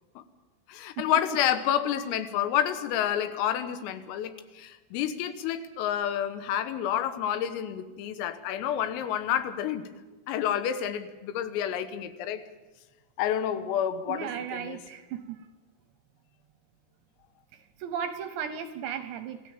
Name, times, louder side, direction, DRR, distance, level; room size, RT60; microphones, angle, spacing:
voice 1, 0.7-9.9 10.3-12.4 13.2-14.8, left 10 dB, 85° left, 3.8 m, -29 dB
voice 2, 14.1-15.4 17.8-19.4, right 8 dB, 75° right, 2.7 m, -35 dB
26.5 x 16.0 x 7.3 m
omnidirectional pair, 5.9 m